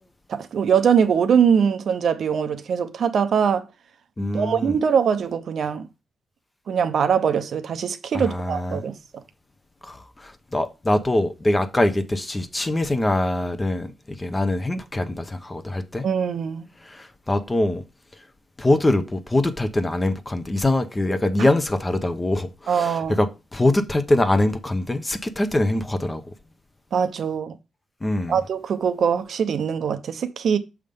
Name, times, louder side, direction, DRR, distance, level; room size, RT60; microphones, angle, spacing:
voice 1, 0.3-3.6 4.3-5.9 6.7-9.0 16.0-16.7 22.7-23.2 26.9-27.5 28.3-30.6, right 7 dB, 65° right, 0.7 m, -22 dB
voice 2, 4.2-4.8 8.1-8.8 9.8-16.1 16.8-17.8 18.6-26.2 28.0-28.4, left 1 dB, 15° left, 0.8 m, -23 dB
6.6 x 3.6 x 5.2 m
cardioid pair, 120°, 0 cm